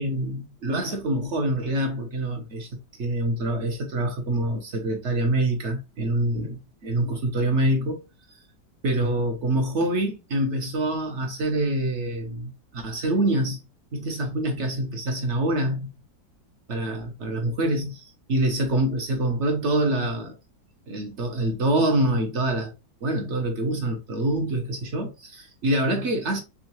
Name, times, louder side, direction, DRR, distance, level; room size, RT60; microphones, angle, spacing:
voice 1, 0.0-2.7 3.0-8.0 8.3-8.4 8.8-13.6 13.9-15.9 16.7-20.4 20.9-22.7 23.0-26.4, right 1 dB, 55° right, 0.8 m, -25 dB
3.6 x 3.6 x 2.9 m
omnidirectional pair, 2.0 m